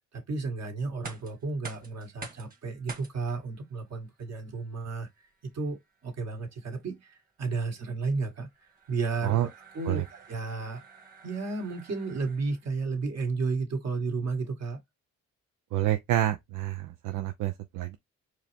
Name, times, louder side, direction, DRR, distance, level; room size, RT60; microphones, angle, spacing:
voice 1, 0.1-5.1 5.5-8.5 8.9-9.5 9.7-10.0 10.3-10.8 11.2-14.8, right 4 dB, 60° right, 2.1 m, -32 dB
sound 1, 0.9-12.7, right 3 dB, 30° right, 1.7 m, -50 dB
voice 2, 15.7-18.0, right 13 dB, 80° right, 0.6 m, -28 dB
4.6 x 3.1 x 3.4 m
cardioid pair, 90°, 30 cm